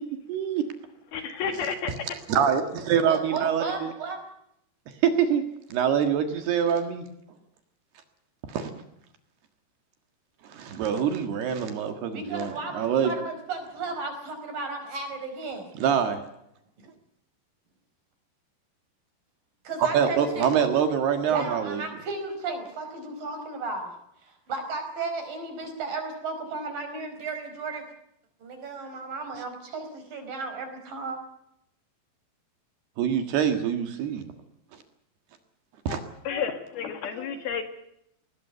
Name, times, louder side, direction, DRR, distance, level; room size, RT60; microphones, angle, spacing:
voice 1, 0.3-0.6 2.3-3.9 5.0-5.4 5.7-7.1 8.5-8.7 10.4-13.2 15.8-16.2 19.8-21.8 33.0-34.3 35.9-36.0, right 8 dB, 65° right, 7 dB, 3.5 m, -25 dB
voice 2, 1.1-2.1 35.9-37.6, left 6 dB, 65° left, 8 dB, 3.4 m, -31 dB
voice 3, 3.1-4.2 12.1-15.7 16.8-16.9 19.6-20.5 21.3-27.8 28.4-31.2, right 3 dB, 50° right, 7 dB, 6.1 m, -34 dB
21.0 x 19.5 x 8.1 m, 0.77 s
omnidirectional pair, 5.2 m